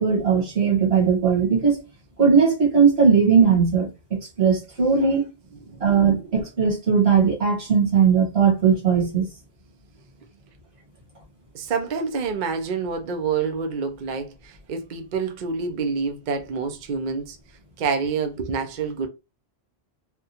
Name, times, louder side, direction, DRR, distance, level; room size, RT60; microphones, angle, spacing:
voice 1, 0.0-1.8 2.2-5.3 5.8-9.2, right 6 dB, 85° right, 1.6 m, -19 dB
voice 2, 5.7-6.0 11.5-17.4 17.8-19.1, right 5 dB, 55° right, 0.7 m, -27 dB
3.4 x 2.3 x 2.7 m
omnidirectional pair, 1.0 m